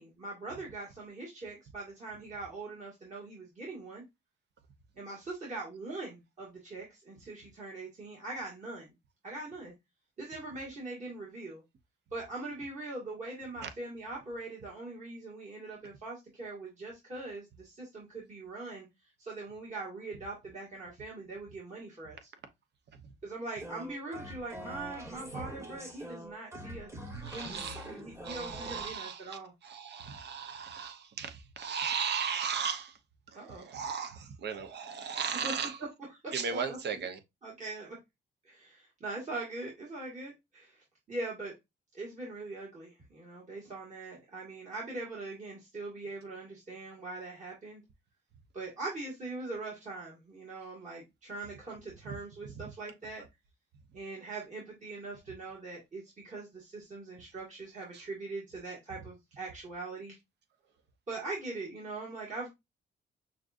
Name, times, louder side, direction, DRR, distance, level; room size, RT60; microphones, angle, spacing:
voice 1, 0.0-4.0 5.0-8.9 9.2-9.7 10.2-11.6 12.1-18.9 19.2-22.3 23.2-26.9 27.3-29.5 33.3-33.7 35.4-35.5 36.2-36.8 37.4-38.0 38.4-41.5 41.9-47.8 48.5-53.2 53.9-60.2 61.1-62.5, right 2 dB, 35° right, 1.8 m, -42 dB
sound 1, 23.6-28.9, right 1 dB, 15° right, 1.2 m, -44 dB
voice 2, 27.2-27.9 28.2-33.0 33.3-35.8 36.3-37.2 52.5-52.6, right 6 dB, 60° right, 0.8 m, -36 dB
5.9 x 2.5 x 2.5 m
cardioid pair, 90°, 20 cm